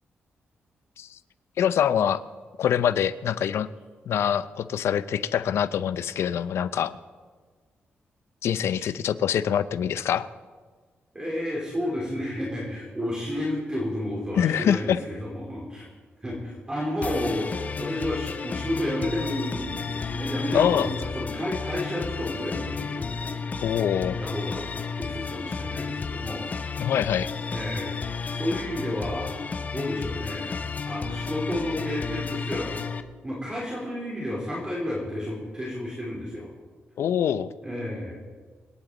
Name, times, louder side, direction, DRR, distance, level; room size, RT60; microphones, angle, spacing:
voice 1, 1.6-2.2 2.6-3.7 4.1-6.9 8.4-10.3 14.4-15.0 20.5-20.9 23.6-24.2 26.8-27.3 37.0-37.5, left 9 dB, 85° left, 14 dB, 0.6 m, -24 dB
voice 2, 11.1-15.9 16.2-17.5 17.8-23.6 24.0-24.6 24.9-26.4 27.5-28.0 28.3-29.3 29.7-30.5 30.9-32.7 33.2-36.5 37.6-38.2, left 1 dB, 20° right, -5 dB, 3.5 m, -31 dB
sound 1, 17.0-33.0, left 5 dB, 35° left, 0.7 m, -32 dB
28.0 x 9.7 x 4.0 m, 1.5 s
wide cardioid pair, 125°, 4 cm